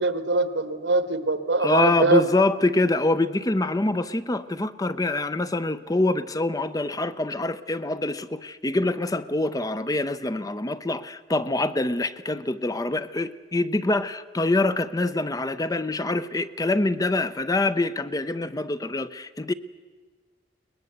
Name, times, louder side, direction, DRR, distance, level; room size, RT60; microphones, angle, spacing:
voice 1, 0.0-2.3, right 3 dB, 80° right, 11 dB, 1.5 m, -23 dB
voice 2, 1.6-19.5, left 2 dB, 20° left, 13 dB, 0.6 m, -25 dB
22.5 x 20.0 x 8.1 m, 1.4 s
head